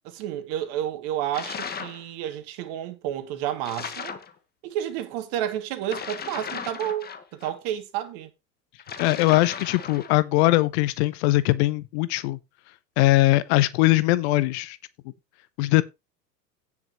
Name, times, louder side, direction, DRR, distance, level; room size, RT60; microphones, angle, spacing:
voice 1, 0.0-4.1 4.6-8.3, right 11 dB, 45° right, 2.6 m, -31 dB
sound 1, 1.3-2.0 3.6-4.3 5.8-7.5 8.8-10.2, left 6 dB, 20° left, 1.6 m, -36 dB
voice 2, 9.0-12.4 13.0-14.8 15.6-15.8, left 18 dB, 45° left, 0.8 m, -21 dB
17.0 x 5.8 x 3.1 m
figure-of-eight pair, 85°, 48 cm